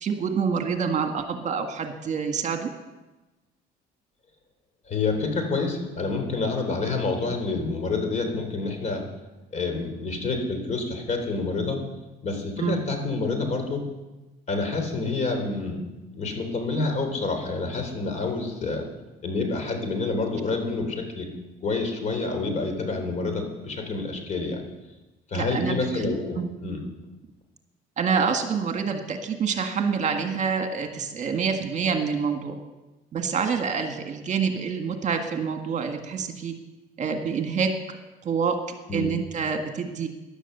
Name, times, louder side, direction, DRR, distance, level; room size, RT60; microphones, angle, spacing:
voice 1, 0.0-2.7 12.6-12.8 25.3-26.5 28.0-32.6 33.1-36.5 37.0-37.7 38.3-38.6 38.9-40.1, right 6 dB, 45° right, 5 dB, 1.8 m, -27 dB
voice 2, 4.9-9.0 9.5-11.8 12.2-13.8 14.5-15.8 16.1-18.8 19.2-21.3 21.6-24.6 25.3-26.8 38.9-39.1, left 3 dB, 45° left, 5 dB, 3.6 m, -28 dB
15.5 x 11.0 x 6.8 m, 1.1 s
cardioid pair, 110°, 17 cm